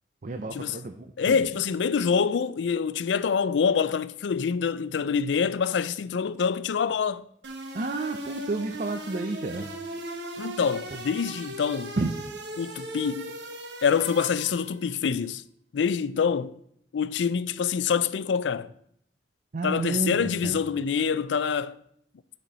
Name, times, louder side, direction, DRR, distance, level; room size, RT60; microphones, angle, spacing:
voice 1, 0.2-1.5 7.7-9.7 12.0-12.1 19.5-20.6, right 3 dB, 45° right, 0.5 m, -31 dB
voice 2, 1.2-7.3 10.4-12.0 12.6-13.3 13.8-15.4 15.7-16.5 16.9-18.7 19.6-21.8, left 6 dB, 80° left, 0.4 m, -26 dB
sound 1, 7.4-14.9, right 1 dB, 80° right, 1.2 m, -38 dB
10.0 x 4.4 x 5.4 m
head